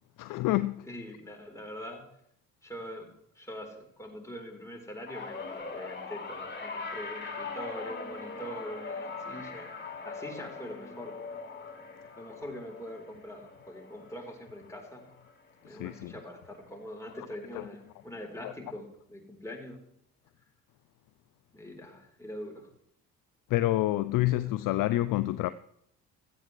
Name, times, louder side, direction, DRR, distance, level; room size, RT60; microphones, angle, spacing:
voice 1, 0.2-0.9 15.6-16.1 17.5-17.7 18.4-18.5 23.5-25.5, left 16 dB, 50° left, 0.5 m, -28 dB
voice 2, 0.8-2.1 2.6-3.1 3.4-9.7 10.0-11.2 12.2-15.1 15.6-19.8 21.5-22.7 24.3-24.5, equal, 5° left, 3.8 m, -43 dB
sound 1, 5.1-15.5 15.8-16.3 17.4-17.5, left 4 dB, 25° left, 3.0 m, -41 dB
16.0 x 13.5 x 3.2 m
figure-of-eight pair, 50°, 43 cm